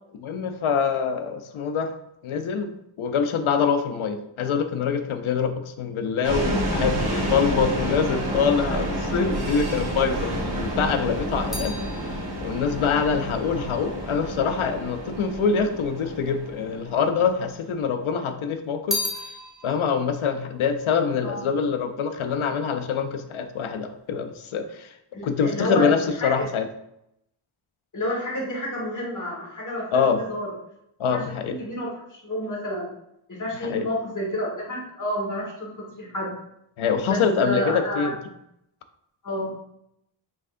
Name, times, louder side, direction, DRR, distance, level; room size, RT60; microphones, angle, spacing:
voice 1, 0.2-1.9 2.2-2.7 3.0-11.8 12.4-19.0 19.6-24.9 25.2-26.7 29.9-30.2 31.0-31.6 33.7-33.8 36.8-38.1, left 6 dB, 85° left, 8 dB, 0.6 m, -25 dB
sound 1, 6.2-17.7, right 1 dB, 50° right, 1.5 m, -29 dB
sound 2, 11.5-15.0 15.7-16.6 16.8-18.0 18.3-21.8 22.1-22.6, left 2 dB, ahead, 0.7 m, -36 dB
voice 2, 25.1-26.5 27.9-30.5 31.1-32.9 33.3-36.3 37.1-38.1 39.2-39.5, left 1 dB, 40° left, -3 dB, 1.5 m, -30 dB
4.6 x 3.6 x 2.5 m, 0.79 s
wide cardioid pair, 100°, 48 cm